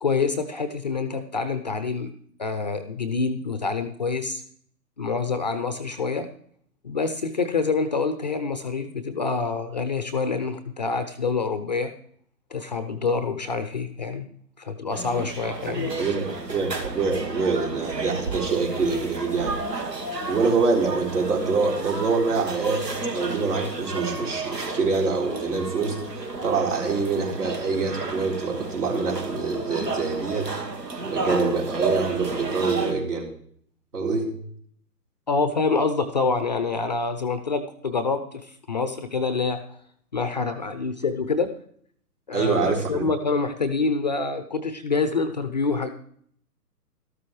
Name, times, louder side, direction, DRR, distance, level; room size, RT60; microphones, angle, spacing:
voice 1, 0.0-2.1 2.4-4.4 5.0-6.3 6.8-11.9 12.5-14.3 14.6-16.1 35.3-39.6 40.1-41.5 42.3-45.9, left 4 dB, 30° left, 10 dB, 0.5 m, -26 dB
sound 1, 14.9-32.9, right 3 dB, 85° right, 1.8 m, -32 dB
voice 2, 15.7-19.8 20.3-30.5 31.1-33.3 33.9-34.3 42.3-43.1, right 4 dB, 70° right, -1 dB, 4.1 m, -25 dB
13.0 x 12.5 x 3.1 m, 0.62 s
figure-of-eight pair, 135°, 48 cm